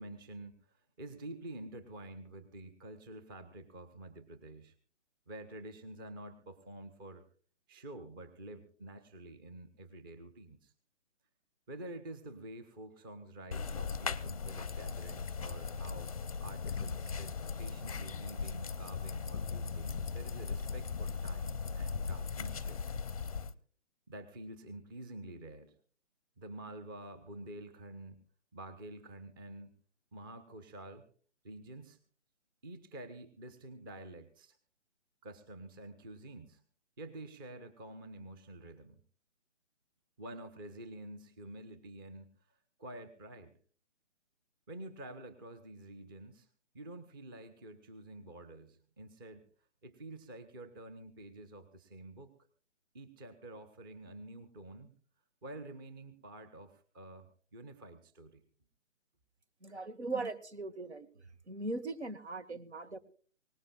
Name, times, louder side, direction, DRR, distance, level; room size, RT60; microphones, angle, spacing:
voice 1, 0.0-4.7 5.3-7.2 7.7-10.7 11.7-16.1 16.4-17.3 17.6-22.8 24.1-25.7 26.4-28.2 28.5-29.8 30.1-31.0 31.4-32.0 32.6-34.6 35.2-36.6 37.0-39.0 40.2-43.5 44.7-46.5 46.7-49.4 49.8-52.3 52.9-54.9 55.4-58.4, right 1 dB, 20° right, 10 dB, 1.0 m, -48 dB
sound 1, 13.5-23.5, left 5 dB, 30° left, 0.7 m, -38 dB
voice 2, 59.6-63.0, right 3 dB, 65° right, 11 dB, 1.9 m, -40 dB
21.5 x 19.0 x 2.4 m, 0.43 s
figure-of-eight pair, 145°, 37 cm